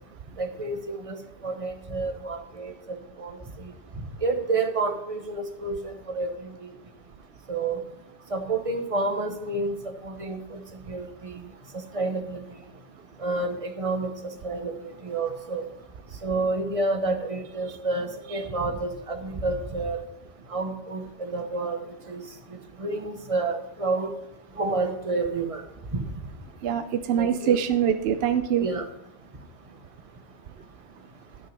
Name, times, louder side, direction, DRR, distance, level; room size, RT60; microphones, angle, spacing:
voice 1, 0.4-1.2 1.4-3.4 4.2-6.3 6.6-6.7 7.5-7.8 8.3-10.6 10.9-11.5 11.9-12.4 13.2-14.1 14.4-14.7 15.0-15.7 16.2-20.0 20.5-22.2 22.5-24.1 24.6-25.6 25.9-26.0 27.2-27.6 28.6-28.8, right 3 dB, 30° right, 6 dB, 1.0 m, -29 dB
voice 2, 26.6-28.7, right 9 dB, 65° right, 9 dB, 0.7 m, -24 dB
10.5 x 6.4 x 5.3 m, 0.89 s
omnidirectional pair, 1.2 m